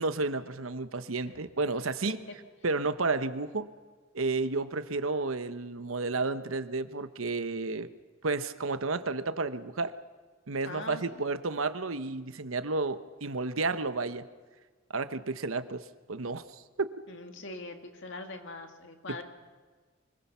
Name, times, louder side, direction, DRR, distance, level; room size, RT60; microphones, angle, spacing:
voice 1, 0.0-2.2 2.6-3.7 4.1-7.9 8.2-9.9 10.5-14.3 14.9-16.9, right 3 dB, 75° right, 11 dB, 1.0 m, -31 dB
voice 2, 10.6-11.2 17.1-19.2, left 2 dB, 65° left, 5 dB, 2.3 m, -42 dB
25.0 x 21.5 x 5.7 m, 1.5 s
head